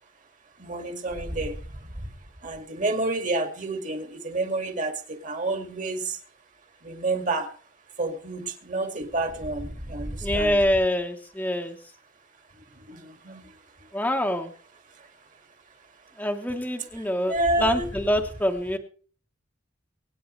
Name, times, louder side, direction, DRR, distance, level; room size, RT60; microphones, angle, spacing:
voice 1, 0.6-1.6 2.4-6.2 6.8-7.5 8.0-10.6 12.9-13.4 17.3-17.9, right 2 dB, 45° right, 6 dB, 2.1 m, -29 dB
voice 2, 10.2-11.8 13.9-14.5 16.2-17.3 17.6-18.8, left 1 dB, 10° left, 3 dB, 1.0 m, -25 dB
24.0 x 9.3 x 3.2 m, 0.43 s
head